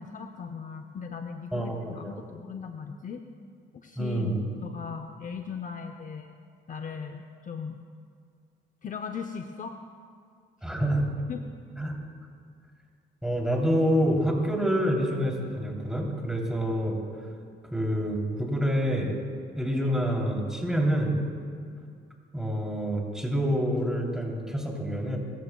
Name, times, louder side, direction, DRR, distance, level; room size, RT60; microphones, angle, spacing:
voice 1, 0.0-3.2 3.7-4.4 4.6-6.4 6.7-7.8 8.8-9.8 11.3-11.4, left 6 dB, 40° left, 6 dB, 0.7 m, -38 dB
voice 2, 1.5-2.2 4.0-4.4 10.6-11.1 11.8-11.9 13.2-17.0 17.7-19.2 19.6-21.2 22.3-25.2, equal, 5° right, -1 dB, 3.2 m, -27 dB
27.5 x 14.0 x 2.3 m, 2.2 s
cardioid pair, 90°, 20 cm